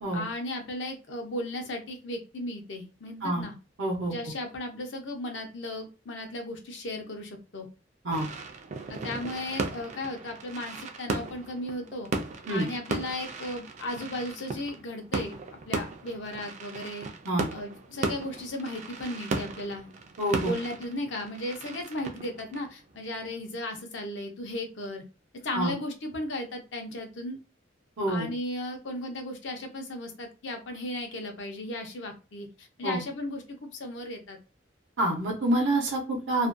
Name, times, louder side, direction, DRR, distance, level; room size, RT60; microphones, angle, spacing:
voice 1, 0.1-3.5 4.1-7.7 8.9-12.1 12.5-15.4 15.7-17.1 17.5-19.9 20.4-25.0 25.3-27.4 28.1-33.4 33.7-34.4, left 1 dB, 75° left, 4 dB, 0.6 m, -35 dB
voice 2, 3.8-4.1 8.0-8.3 12.5-12.7 17.3-17.5 20.2-20.5 25.5-25.7 28.0-28.3 32.8-33.0 35.0-36.5, right 1 dB, 85° right, -1 dB, 0.7 m, -27 dB
sound 1, 8.1-23.4, right 3 dB, 40° right, 0.3 m, -36 dB
2.5 x 2.2 x 2.4 m, 0.31 s
head